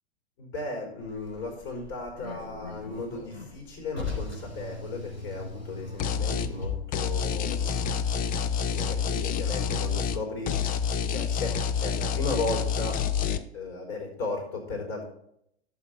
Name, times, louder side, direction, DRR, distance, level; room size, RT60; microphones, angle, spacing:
voice 1, 0.4-8.0 8.7-10.5 11.1-15.0, left 3 dB, 45° left, 0 dB, 4.5 m, -35 dB
Car, 1.0-8.7, left 4 dB, 90° left, 4.8 m, -40 dB
sound 1, 6.0-6.5 6.9-10.2 10.5-13.4, left 7 dB, 25° left, 0.7 m, -28 dB
12.0 x 7.5 x 4.4 m, 0.73 s
hypercardioid pair, 105°, 32 cm